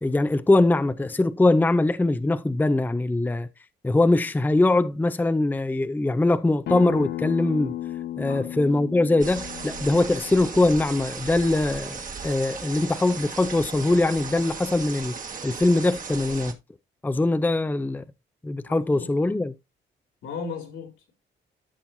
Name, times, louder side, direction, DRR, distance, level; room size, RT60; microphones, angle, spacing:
voice 1, 0.0-3.5 3.8-7.7 8.2-15.1 15.4-16.6 17.0-18.0 18.4-19.5, left 2 dB, 10° left, 0.6 m, -22 dB
Acoustic guitar, 6.7-11.9, left 12 dB, 60° left, 0.6 m, -35 dB
sound 1, 9.2-16.5, right 5 dB, 40° right, 1.6 m, -36 dB
voice 2, 18.7-19.4 20.2-21.1, left 5 dB, 75° left, 2.9 m, -37 dB
13.5 x 5.6 x 2.6 m
cardioid pair, 90°, 20 cm